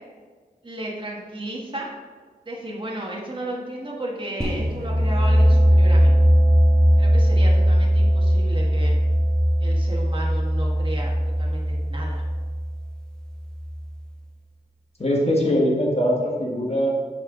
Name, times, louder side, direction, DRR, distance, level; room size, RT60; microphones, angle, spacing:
voice 1, 0.6-1.9 2.4-6.1 7.0-9.0 9.6-11.1 11.4-12.2, right 1 dB, 30° right, -3 dB, 1.4 m, -33 dB
sound 1, 4.4-14.0, equal, 5° left, 1.0 m, -19 dB
voice 2, 15.0-16.9, equal, 40° left, -1 dB, 1.5 m, -21 dB
8.5 x 5.5 x 3.8 m, 1.5 s
wide cardioid pair, 100°, 16 cm